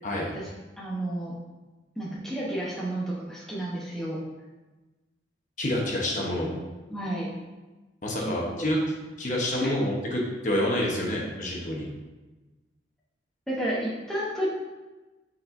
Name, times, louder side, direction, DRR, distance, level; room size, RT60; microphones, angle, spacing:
voice 1, 0.8-1.4 2.0-4.2 6.9-7.3 8.2-8.7 9.6-9.7 13.5-14.5, right 1 dB, 5° left, -6 dB, 0.9 m, -31 dB
voice 2, 5.6-6.5 8.0-8.8 9.2-11.9, left 1 dB, 40° left, -2 dB, 1.0 m, -28 dB
8.3 x 4.3 x 2.7 m, 1.2 s
head